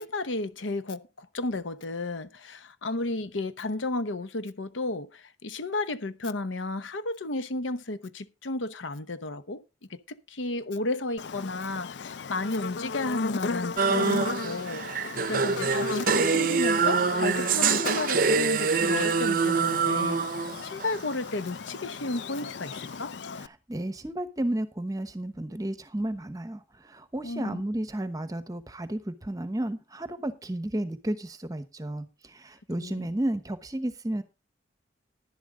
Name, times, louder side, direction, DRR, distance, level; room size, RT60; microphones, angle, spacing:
voice 1, 0.0-9.6 9.9-23.1 27.2-27.6 32.8-33.1, left 2 dB, 90° left, 0.9 m, -33 dB
Buzz, 11.2-23.5, left 4 dB, 65° left, 0.5 m, -36 dB
sound 1, 13.8-21.0, right 5 dB, 45° right, 0.6 m, -25 dB
voice 2, 23.4-34.2, right 1 dB, 20° right, 0.9 m, -32 dB
11.0 x 11.0 x 3.8 m
head